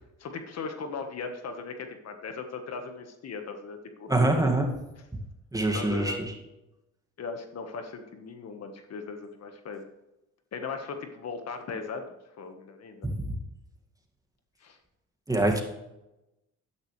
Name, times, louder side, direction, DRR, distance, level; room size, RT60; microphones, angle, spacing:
voice 1, 0.2-4.5 5.7-6.2 7.2-9.9 10.5-13.1 14.6-14.8, left 4 dB, 55° left, 6 dB, 1.5 m, -38 dB
voice 2, 4.1-4.7 5.5-6.2 15.3-15.6, right 2 dB, 10° right, 2 dB, 2.1 m, -24 dB
12.5 x 10.5 x 3.3 m, 0.95 s
cardioid pair, 90°, 30 cm